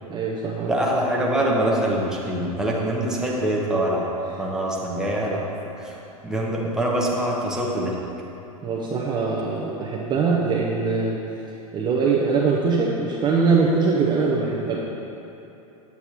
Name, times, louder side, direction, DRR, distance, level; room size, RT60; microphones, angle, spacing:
voice 1, 0.1-0.7 8.6-11.2 11.7-14.8, right 4 dB, 25° right, -4 dB, 0.8 m, -22 dB
voice 2, 0.7-4.1 4.4-5.4 5.8-6.0 6.2-8.0, right 1 dB, 5° right, -4 dB, 1.1 m, -24 dB
8.3 x 6.9 x 3.0 m, 3.0 s
hypercardioid pair, 105°, 19 cm